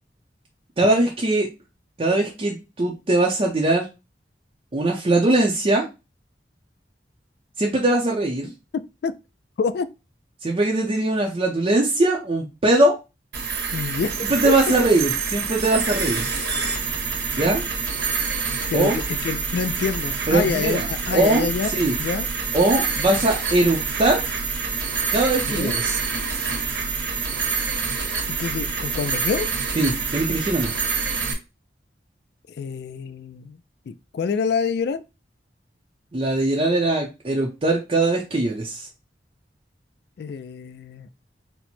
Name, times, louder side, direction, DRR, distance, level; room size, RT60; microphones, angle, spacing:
voice 1, 0.8-1.5 2.0-3.9 4.7-5.9 7.6-8.5 10.4-13.0 14.2-16.2 17.4-17.6 18.7-19.0 20.3-20.9 21.1-21.5 21.7-21.9 22.5-24.2 25.1-26.0 29.8-30.7 36.1-38.9, right 2 dB, 35° right, 0.6 m, -21 dB
sound 1, 13.3-31.3, right 5 dB, 75° right, 1.2 m, -27 dB
voice 2, 13.7-14.1 14.4-14.5 18.7-22.3 25.5-25.7 28.3-29.5 32.5-33.6 33.9-35.0 40.2-41.1, left 5 dB, 65° left, 0.3 m, -27 dB
4.4 x 2.1 x 4.1 m
head